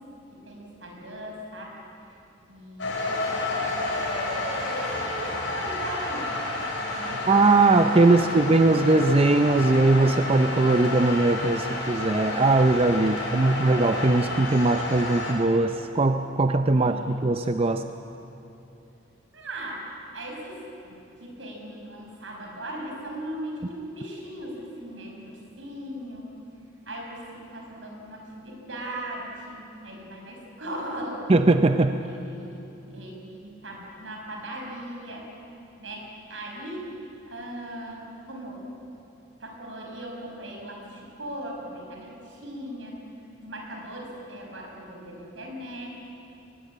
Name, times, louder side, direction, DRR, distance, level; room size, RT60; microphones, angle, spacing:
voice 1, 0.3-1.8 2.5-6.5 6.9-7.3 7.9-8.6 13.1-13.7 16.7-17.2 19.3-19.8 20.1-26.3 26.9-31.3 32.0-32.6 32.9-35.3 35.8-36.9 37.3-38.7 39.4-43.0 43.4-45.9, right 1 dB, 75° right, 0 dB, 5.7 m, -39 dB
sound 1, 2.8-15.3, left 2 dB, 70° left, 5.6 m, -30 dB
voice 2, 7.3-17.8 31.3-32.0, right 2 dB, 30° right, 8 dB, 0.6 m, -20 dB
22.0 x 20.5 x 8.5 m, 2.8 s
head